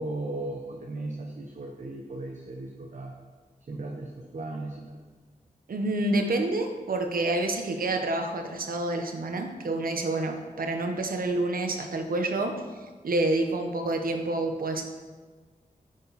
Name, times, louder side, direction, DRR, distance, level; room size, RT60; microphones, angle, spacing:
voice 1, 0.0-3.1 3.7-5.0, right 2 dB, 60° right, 1 dB, 1.0 m, -36 dB
voice 2, 5.7-12.5 13.0-14.8, right 2 dB, 85° right, 5 dB, 1.1 m, -28 dB
9.6 x 8.9 x 4.2 m, 1.4 s
wide cardioid pair, 105°, 14 cm